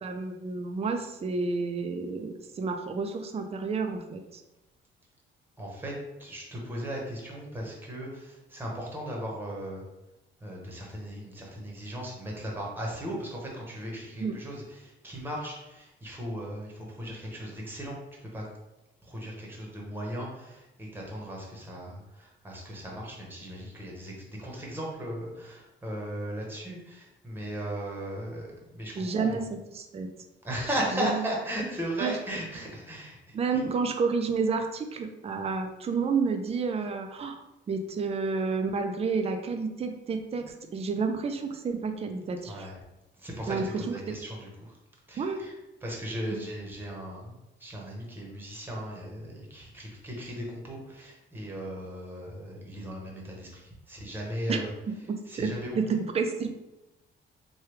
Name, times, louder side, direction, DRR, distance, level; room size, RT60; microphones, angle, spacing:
voice 1, 0.0-4.4 14.2-14.4 29.0-29.4 29.7-30.1 30.9-31.2 32.0-32.2 33.3-37.4 37.7-42.7 43.5-44.0 45.2-45.4 46.3-46.4 54.5-54.6 55.1-55.5 55.8-56.5, right 4 dB, 30° right, 6 dB, 0.4 m, -30 dB
voice 2, 5.6-5.9 6.2-9.8 10.4-18.0 18.3-18.4 19.0-28.5 28.7-29.4 30.4-33.3 42.5-42.7 43.2-44.7 45.1-45.5 45.8-54.7 55.3-55.8, equal, 10° right, -2 dB, 1.0 m, -37 dB
3.2 x 2.3 x 3.2 m, 0.97 s
cardioid pair, 90°, 20 cm